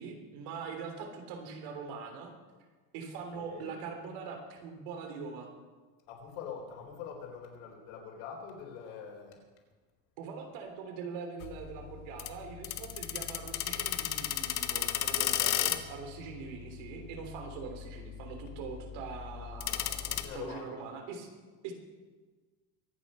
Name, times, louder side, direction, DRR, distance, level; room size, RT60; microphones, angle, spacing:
voice 1, 0.0-2.3 2.9-5.5 10.2-21.3 21.6-21.7, right 5 dB, 70° right, 4 dB, 3.4 m, -42 dB
voice 2, 3.1-3.8 6.1-9.4 20.1-20.7, left 6 dB, 85° left, 1 dB, 4.0 m, -44 dB
sound 1, 11.4-20.2, left 12 dB, 45° left, 1.0 m, -35 dB
23.5 x 9.4 x 5.5 m, 1.4 s
cardioid pair, 145°, 40 cm